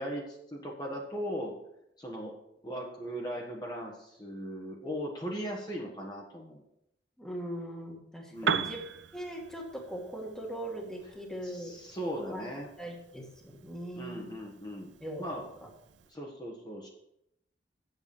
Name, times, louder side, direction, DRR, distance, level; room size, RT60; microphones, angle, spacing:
voice 1, 0.0-1.5 2.0-2.3 2.6-6.6 8.3-8.7 11.4-12.7 14.0-14.9 15.2-15.5 16.1-16.9, equal, 25° left, -1 dB, 1.6 m, -38 dB
voice 2, 7.2-8.8 9.1-11.7 12.3-12.4 12.8-14.3 15.0-15.2, right 1 dB, 5° left, 0 dB, 1.9 m, -40 dB
Piano, 8.3-16.1, right 6 dB, 80° right, 0.6 m, -40 dB
8.1 x 7.9 x 7.2 m, 0.80 s
head